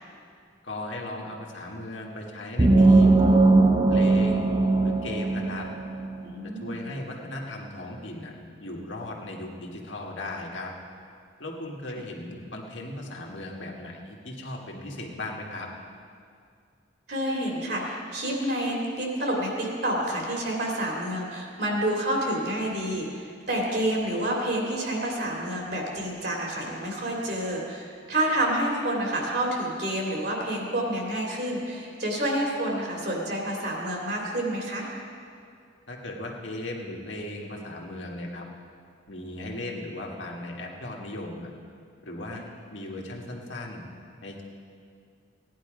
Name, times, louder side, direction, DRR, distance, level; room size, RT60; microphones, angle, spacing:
voice 1, 0.6-3.2 3.9-4.4 4.8-5.7 6.6-8.3 8.6-10.7 11.4-15.7 35.9-38.5 39.1-41.5 42.0-42.4 42.7-43.9 44.2-44.4, left 1 dB, 85° left, -1 dB, 1.8 m, -37 dB
sound 1, 2.6-6.1, right 2 dB, 25° right, 0.8 m, -19 dB
voice 2, 6.2-6.9 17.1-34.9 42.3-42.4, right 1 dB, 60° right, -1 dB, 2.9 m, -29 dB
16.0 x 10.5 x 5.1 m, 2.3 s
head